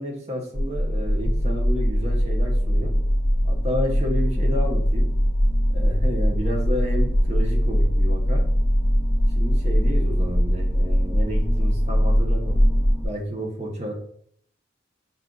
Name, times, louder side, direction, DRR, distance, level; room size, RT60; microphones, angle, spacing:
voice 1, 0.0-2.9 3.4-5.1 5.7-8.4 9.4-12.6 13.0-13.9, equal, 35° right, 1 dB, 0.9 m, -31 dB
sound 1, 0.6-13.0, equal, 10° right, 0.8 m, -21 dB
5.7 x 2.4 x 3.8 m, 0.64 s
head